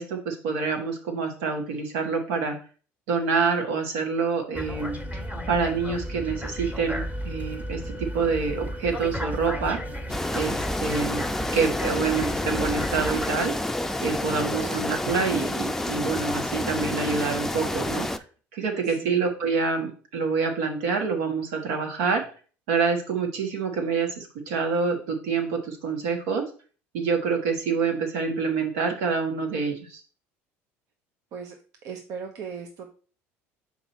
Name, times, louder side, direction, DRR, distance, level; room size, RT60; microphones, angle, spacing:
voice 1, 0.0-2.6 3.1-9.8 10.3-11.2 11.5-13.5 14.0-18.1 18.5-22.2 22.7-26.4 26.9-30.0, right 5 dB, 75° right, 3 dB, 1.4 m, -27 dB
sound 1, 4.5-13.3, equal, 20° right, 1.6 m, -33 dB
sound 2, 10.1-18.2, left 1 dB, 5° left, 0.5 m, -29 dB
voice 2, 14.5-14.8 18.8-19.2 31.3-31.6 31.8-32.9, right 6 dB, 60° right, 3 dB, 0.8 m, -37 dB
5.6 x 4.6 x 4.2 m, 0.39 s
hypercardioid pair, 70°, 7 cm